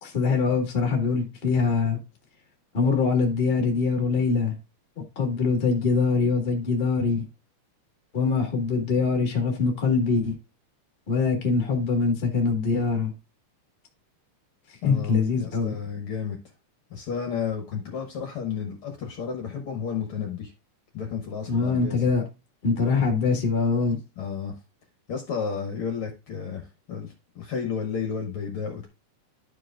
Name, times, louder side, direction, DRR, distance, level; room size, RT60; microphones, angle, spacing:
voice 1, 0.0-2.0 2.7-4.5 5.1-7.2 8.1-10.3 11.1-13.1 14.8-15.7 21.5-22.2 22.6-24.0, left 4 dB, 35° left, 0.9 m, -23 dB
voice 2, 14.8-16.4 16.9-20.5 20.9-22.0 24.2-24.5 25.1-28.9, left 6 dB, 60° left, 1.6 m, -32 dB
11.5 x 4.8 x 2.4 m
omnidirectional pair, 3.6 m